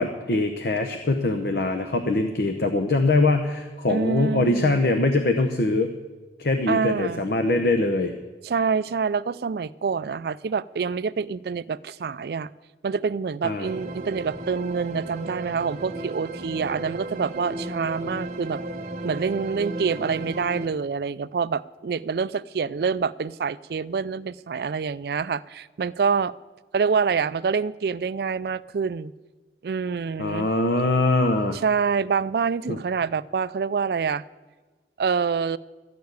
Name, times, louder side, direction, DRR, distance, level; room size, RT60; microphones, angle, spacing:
voice 1, 0.0-5.9 6.4-8.1 13.4-13.7 30.2-31.6 32.7-32.8, left 2 dB, 60° left, 6 dB, 0.8 m, -23 dB
voice 2, 3.9-4.9 6.7-7.3 8.4-12.5 12.8-18.6 19.0-26.3 26.7-29.1 29.6-30.5 31.5-34.2 35.0-35.6, right 5 dB, 60° right, 17 dB, 0.3 m, -26 dB
sound 1, 13.6-20.7, right 1 dB, 40° right, 1.1 m, -34 dB
13.5 x 6.7 x 9.4 m, 1.3 s
head